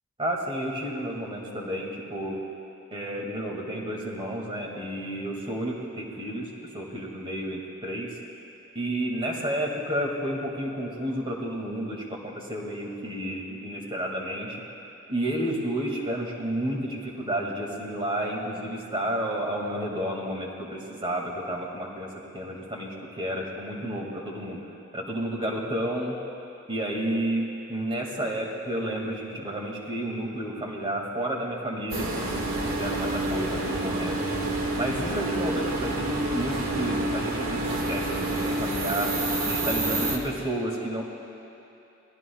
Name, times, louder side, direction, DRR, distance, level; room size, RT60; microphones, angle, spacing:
voice 1, 0.2-2.3 2.9-8.1 8.7-14.6 15.1-22.1 22.3-24.6 24.9-26.2 26.7-34.2 34.8-39.1 39.5-41.0, right 1 dB, 25° right, -1 dB, 2.1 m, -31 dB
sound 1, 31.9-40.2, right 2 dB, 85° right, 1.9 m, -28 dB
28.0 x 19.0 x 2.3 m, 2.9 s
head